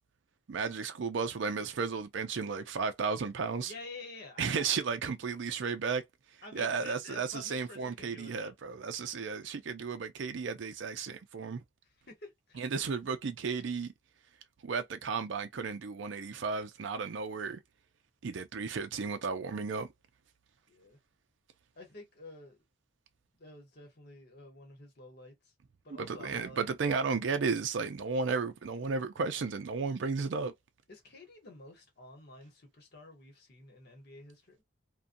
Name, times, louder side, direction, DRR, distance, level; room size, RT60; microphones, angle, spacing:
voice 1, 0.5-3.7 4.4-6.0 6.5-11.6 12.6-13.9 14.6-17.6 18.2-19.9 26.0-30.5, right 5 dB, 60° right, 0.4 m, -34 dB
voice 2, 3.6-4.6 6.4-8.5 9.1-9.3 12.1-12.7 20.7-21.0 21.8-22.6 23.4-25.5 25.8-26.7 30.9-34.6, left 2 dB, 50° left, 1.0 m, -50 dB
2.6 x 2.2 x 2.5 m
head